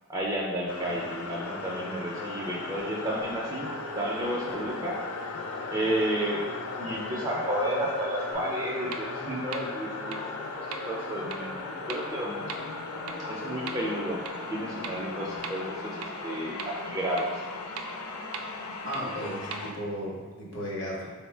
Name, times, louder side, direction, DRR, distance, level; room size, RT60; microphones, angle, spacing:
voice 1, 0.1-5.0 5.7-6.5 6.8-10.2 10.9-11.6 11.9-12.4 13.3-14.2 14.5-17.3, right 1 dB, 15° right, -4 dB, 0.4 m, -32 dB
sound 1, 0.7-19.7, left 3 dB, 85° left, 0.4 m, -37 dB
sound 2, 8.3-8.4 8.9-9.0 9.5-9.6 10.1-10.2 10.7-10.8 11.3-11.4 11.9-12.0 12.5-12.6 13.1-13.2 13.7-13.8 14.2-14.3 14.8-14.9 15.4-15.5 16.0-16.1 16.6-16.7 17.2-17.3 17.8-17.9 18.3-18.4 18.9-19.0 19.5-19.6, right 6 dB, 85° right, 0.4 m, -37 dB
voice 2, 18.8-21.1, equal, 55° left, -4 dB, 0.8 m, -35 dB
3.8 x 2.0 x 4.3 m, 1.3 s
head